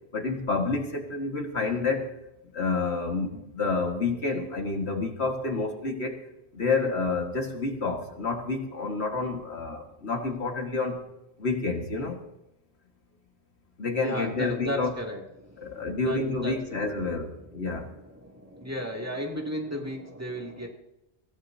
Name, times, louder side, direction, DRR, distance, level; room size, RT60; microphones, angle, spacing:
voice 1, 0.1-2.1 2.5-6.2 6.5-11.0 11.4-12.2 13.8-14.9 15.6-17.9, left 3 dB, 80° left, 3 dB, 2.1 m, -29 dB
voice 2, 14.0-16.8 17.3-20.7, equal, 15° right, -1 dB, 2.6 m, -35 dB
23.5 x 16.0 x 2.8 m, 0.87 s
omnidirectional pair, 1.1 m